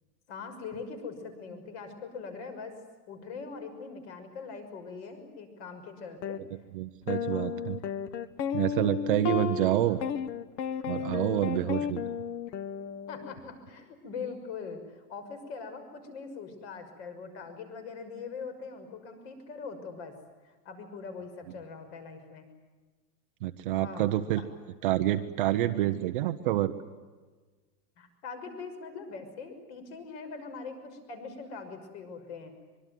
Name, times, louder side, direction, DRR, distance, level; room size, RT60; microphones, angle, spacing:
voice 1, 0.3-2.7 3.1-6.4 7.3-7.5 9.8-10.0 11.2-11.9 13.1-20.1 20.4-22.4 23.7-24.5 28.0-32.6, left 5 dB, 40° left, 8 dB, 6.3 m, -42 dB
sound 1, 6.2-6.4 7.1-13.4, left 8 dB, 85° left, 1.7 m, -33 dB
voice 2, 6.7-7.8 8.5-10.0 10.9-12.0 23.4-24.4 24.8-26.7, right 14 dB, 30° right, 8 dB, 0.9 m, -27 dB
24.5 x 24.0 x 9.2 m, 1.4 s
supercardioid pair, 175°, 49 cm